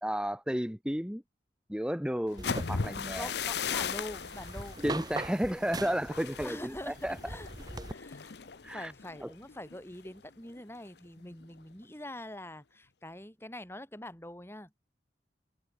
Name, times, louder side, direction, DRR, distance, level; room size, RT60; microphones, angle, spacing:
voice 1, 0.0-1.2 1.7-3.3 4.8-7.2 8.6-8.9 9.2-9.3, equal, 5° right, 1.5 m, -32 dB
sound 1, 2.3-10.1 10.5-10.8 11.2-11.6, left 6 dB, 65° left, 0.8 m, -38 dB
sound 2, 2.4-7.9, right 2 dB, 20° right, 1.9 m, -41 dB
voice 2, 3.2-4.8 6.4-8.4 8.6-14.7, left 1 dB, 15° left, 7.5 m, -44 dB
head